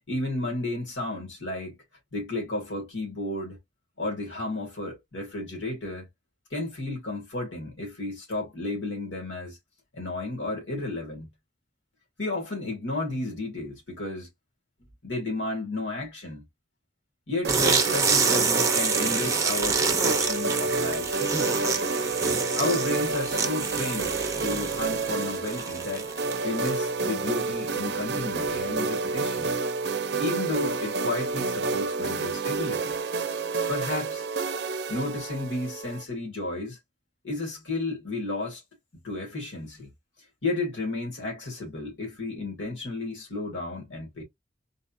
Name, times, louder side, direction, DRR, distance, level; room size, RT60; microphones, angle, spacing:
voice 1, 0.1-1.8 2.1-3.6 4.0-6.1 6.5-9.6 9.9-11.3 12.2-14.3 15.0-16.4 17.3-21.9 22.6-26.1 26.4-29.5 30.2-32.9 33.7-34.3 34.9-36.8 37.2-38.6 39.0-39.9 40.4-44.2, left 2 dB, 90° left, 2.1 m, -32 dB
sound 1, 17.4-36.0, right 4 dB, 65° right, 0.5 m, -29 dB
sound 2, 17.5-27.0, right 5 dB, 15° right, 0.7 m, -27 dB
3.9 x 2.8 x 2.6 m
head